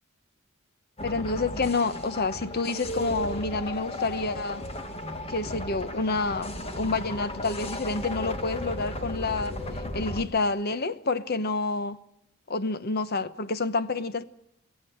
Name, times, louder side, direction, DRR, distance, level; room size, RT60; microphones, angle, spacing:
voice 1, 1.0-4.6 5.3-9.6 9.9-12.0 12.5-14.2, left 3 dB, 45° left, 1.0 m, -28 dB
sound 1, 1.0-10.2, left 1 dB, 30° left, 2.1 m, -35 dB
24.0 x 16.0 x 7.9 m
head